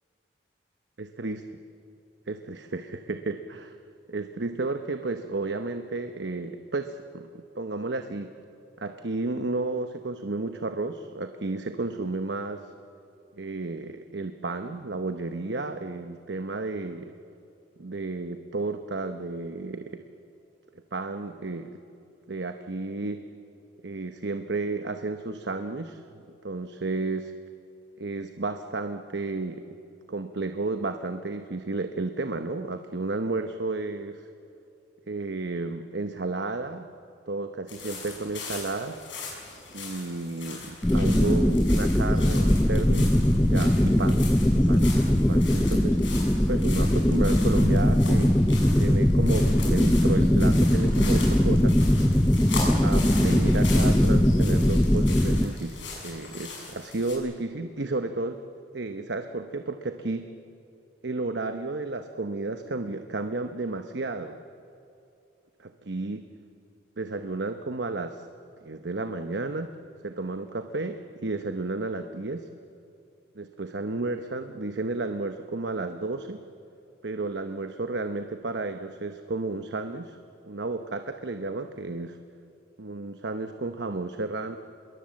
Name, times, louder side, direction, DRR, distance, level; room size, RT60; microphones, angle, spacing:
voice 1, 1.0-1.6 2.3-3.8 4.1-8.3 8.8-12.7 13.3-17.1 17.8-20.0 20.7-21.8 22.3-23.3 23.8-27.3 28.0-29.6 30.1-34.3 35.1-36.9 37.3-39.0 39.7-44.3 44.7-46.0 46.5-48.4 48.8-51.8 52.8-58.4 58.7-60.3 61.0-64.4 65.6-66.2 67.0-68.3 68.6-69.7 70.0-72.5 73.3-76.4 77.0-80.2 80.5-82.2 82.8-84.6, right 3 dB, 70° right, 8 dB, 0.9 m, -32 dB
sound 1, 37.7-57.1, left 4 dB, 90° left, 7.3 m, -39 dB
sound 2, 40.8-55.5, left 1 dB, 10° left, 0.5 m, -21 dB
26.0 x 22.5 x 7.7 m, 2.7 s
head